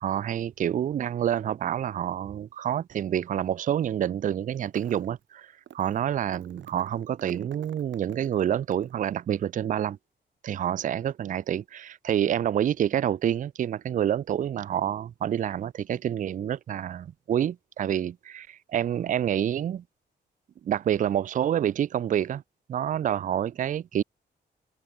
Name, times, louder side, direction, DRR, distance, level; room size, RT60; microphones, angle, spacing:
voice 1, 0.0-10.0 10.4-19.8 20.6-22.4 22.7-24.0, right 10 dB, 45° right, 0.4 m, -28 dB
sound 1, 4.5-5.2 5.7-6.0 6.3-9.0, right 10 dB, 85° right, 2.1 m, -50 dB
wide cardioid pair, 120°, 19 cm